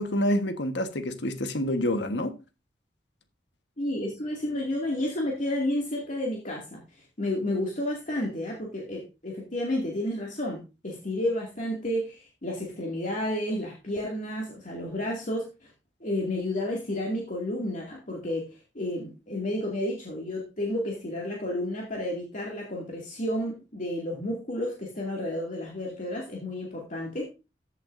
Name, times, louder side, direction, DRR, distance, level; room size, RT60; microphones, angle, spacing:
voice 1, 0.0-2.3, left 1 dB, 80° left, 1.4 m, -27 dB
voice 2, 3.8-6.8 7.2-15.7 16.0-18.4 18.7-27.2, left 1 dB, 45° left, 2.4 m, -31 dB
14.5 x 8.0 x 2.7 m
head